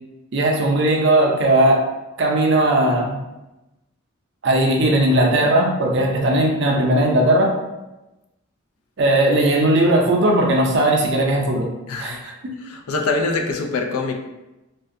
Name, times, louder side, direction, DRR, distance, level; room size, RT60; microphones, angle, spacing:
voice 1, 0.3-1.8 2.2-3.2 4.4-7.5 9.0-11.7 12.0-12.3, right 1 dB, 55° right, 0 dB, 0.4 m, -17 dB
voice 2, 11.9-12.3 12.7-14.1, left 3 dB, 85° left, 3 dB, 0.4 m, -24 dB
2.4 x 2.1 x 2.6 m, 1.0 s
head